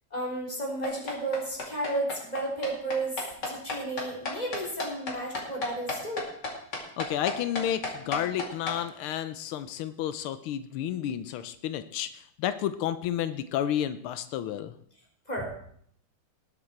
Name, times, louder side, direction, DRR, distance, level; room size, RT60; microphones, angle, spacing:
voice 1, 0.1-6.3 15.3-15.4, right 2 dB, 20° left, -2 dB, 4.0 m, -33 dB
sound 1, 0.8-8.8, left 3 dB, 55° left, 3.2 m, -33 dB
voice 2, 7.0-14.7, left 10 dB, 90° left, 12 dB, 1.6 m, -31 dB
19.5 x 7.9 x 4.5 m, 0.64 s
omnidirectional pair, 2.3 m